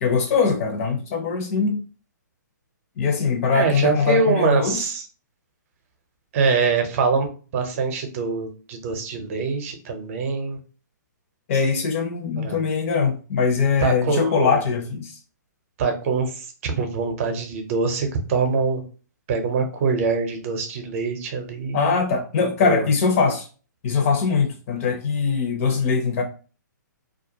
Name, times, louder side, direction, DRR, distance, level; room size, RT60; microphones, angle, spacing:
voice 1, 0.0-1.8 3.0-4.8 11.5-15.2 21.7-23.5 23.8-26.2, left 5 dB, 45° left, 4 dB, 0.7 m, -22 dB
voice 2, 3.5-5.0 6.3-10.6 12.4-12.6 13.8-14.6 15.8-18.8 19.3-22.0 22.6-22.8, right 4 dB, 45° right, 6 dB, 0.7 m, -24 dB
2.4 x 2.2 x 2.8 m, 0.36 s
hypercardioid pair, 135°, 10 cm